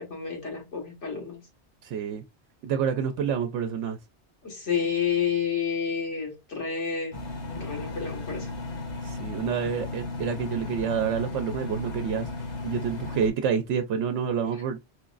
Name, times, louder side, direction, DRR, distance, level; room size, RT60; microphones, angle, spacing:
voice 1, 0.0-1.4 4.4-7.2 7.5-8.5, left 7 dB, 90° left, 1.8 m, -30 dB
voice 2, 1.8-2.2 2.6-4.0 9.0-14.8, right 7 dB, 85° right, 0.9 m, -28 dB
Engine, 7.1-13.3, left 2 dB, 70° left, 1.3 m, -35 dB
4.5 x 3.0 x 2.4 m
omnidirectional pair, 1.2 m